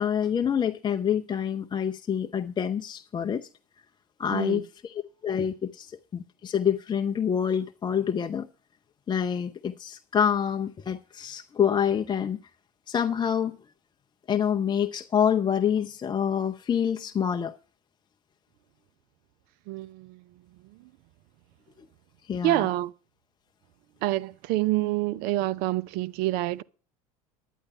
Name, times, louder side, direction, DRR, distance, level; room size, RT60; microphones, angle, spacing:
voice 1, 0.0-3.5 4.2-4.9 5.2-8.5 9.1-12.4 12.9-13.5 14.3-17.6 22.2-22.6, left 8 dB, 25° left, 0.6 m, -27 dB
voice 2, 4.3-4.6 19.7-20.2 20.8-20.9 22.4-22.9 24.0-26.6, right 16 dB, 55° right, 0.5 m, -27 dB
11.0 x 9.9 x 5.4 m
hypercardioid pair, 75°, 19 cm